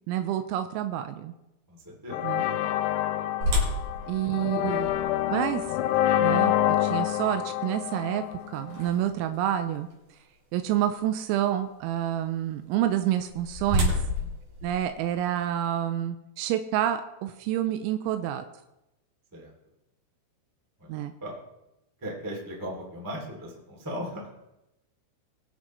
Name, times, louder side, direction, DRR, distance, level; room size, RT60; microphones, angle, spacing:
voice 1, 0.1-1.3 2.2-2.4 4.1-4.9 5.3-5.7 6.2-8.2 8.5-9.9 10.5-13.9 14.6-18.5 20.9-21.1, right 11 dB, 85° right, 7 dB, 3.3 m, -28 dB
voice 2, 1.7-2.7 3.9-4.3 14.2-14.3 19.3-19.5 20.8-21.4 22.0-24.3, equal, 15° right, -2 dB, 0.6 m, -38 dB
sound 1, 2.1-8.9, left 13 dB, 90° left, 3.4 m, -27 dB
sound 2, 3.4-9.4 9.9-10.0 10.6-10.8 12.9-15.6, left 1 dB, 55° right, 4.7 m, -32 dB
22.0 x 7.5 x 3.2 m, 0.90 s
omnidirectional pair, 5.9 m